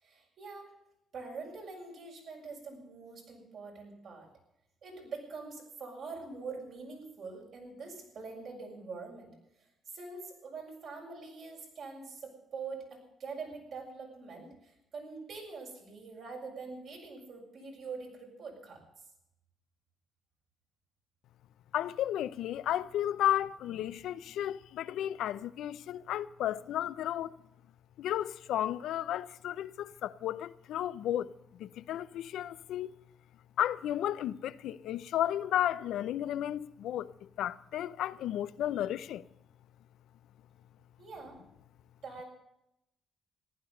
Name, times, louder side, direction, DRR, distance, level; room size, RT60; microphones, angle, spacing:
voice 1, 0.0-0.7 1.1-4.3 4.8-9.3 9.9-18.8 41.0-41.4 42.0-42.2, right 4 dB, 65° right, 6.8 m, -44 dB
voice 2, 21.7-27.4 28.0-31.3 31.6-32.9 33.6-39.2, left 11 dB, 80° left, 0.6 m, -33 dB
15.0 x 11.5 x 6.8 m
cardioid pair, 90°, 0 cm